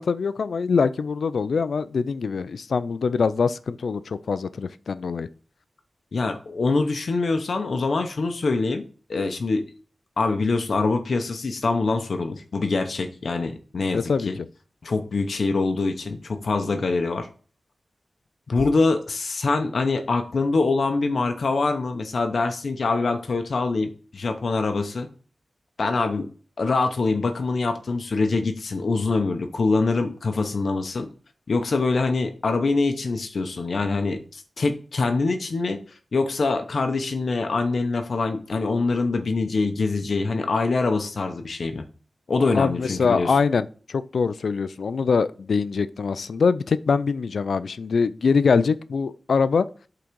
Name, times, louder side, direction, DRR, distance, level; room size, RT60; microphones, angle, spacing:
voice 1, 0.0-5.3 13.9-14.3 42.5-49.7, left 5 dB, 90° left, 0.4 m, -23 dB
voice 2, 6.1-8.8 9.1-9.6 10.2-14.4 14.8-17.3 18.5-25.1 25.8-26.3 26.6-31.1 31.5-41.8 42.3-43.4, left 3 dB, 65° left, 0.8 m, -24 dB
8.4 x 3.9 x 4.6 m
wide cardioid pair, 115°, 0 cm